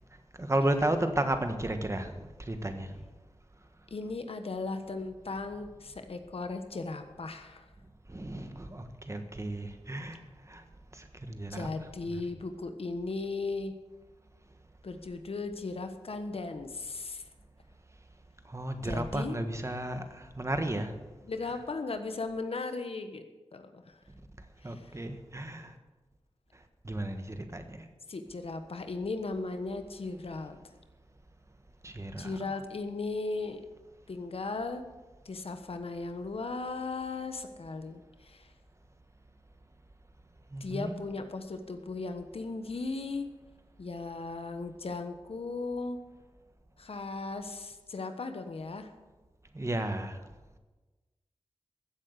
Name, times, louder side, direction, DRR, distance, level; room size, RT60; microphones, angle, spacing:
voice 1, 0.4-3.0 8.1-10.6 10.9-12.2 18.4-20.9 21.4-21.5 24.6-25.7 26.5-27.9 31.8-32.6 40.5-41.0 49.5-50.2, right 1 dB, 30° right, 7 dB, 1.5 m, -34 dB
voice 2, 3.9-7.7 11.5-13.7 14.8-17.2 18.8-19.4 21.2-23.2 23.5-24.0 24.6-24.9 28.1-30.6 32.2-33.6 34.1-34.8 35.2-38.5 40.6-43.3 43.8-46.0 46.8-48.9, left 3 dB, 70° left, 8 dB, 1.2 m, -37 dB
15.0 x 8.2 x 6.7 m, 1.2 s
wide cardioid pair, 60°, 10 cm